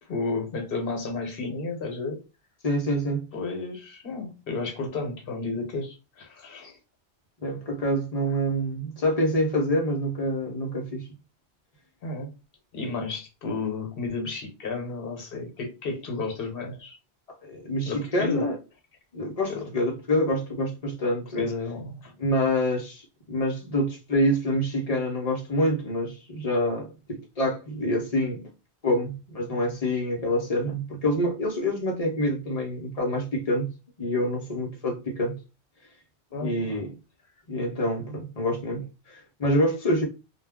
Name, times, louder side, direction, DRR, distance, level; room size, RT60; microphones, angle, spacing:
voice 1, 0.1-2.2 3.3-6.7 12.0-12.3 12.7-17.0 17.9-18.5 19.5-19.7 21.3-22.1 36.3-36.8, left 3 dB, 60° left, 1.1 m, -32 dB
voice 2, 2.6-3.2 7.4-11.1 17.5-18.6 19.1-21.4 22.2-28.5 28.8-33.7 34.0-35.4 36.4-36.9 37.5-40.1, equal, 40° left, 0.7 m, -26 dB
2.3 x 2.2 x 3.4 m
omnidirectional pair, 1.1 m